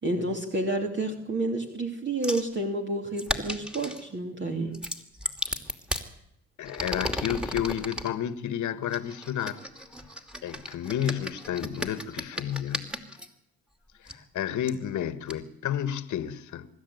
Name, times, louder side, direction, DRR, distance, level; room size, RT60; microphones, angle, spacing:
voice 1, 0.0-4.7, right 2 dB, 40° right, 2.8 m, -30 dB
sound 1, 2.2-2.5 3.2-4.0 4.7-6.1 6.6-8.1 8.9-13.3 14.1-14.2 14.7-14.8 15.3-15.4, equal, 5° right, 2.6 m, -34 dB
voice 2, 6.6-9.6 10.4-12.9 14.0-16.7, left 10 dB, 75° left, 1.6 m, -31 dB
24.0 x 13.0 x 9.4 m
cardioid pair, 90°, 30 cm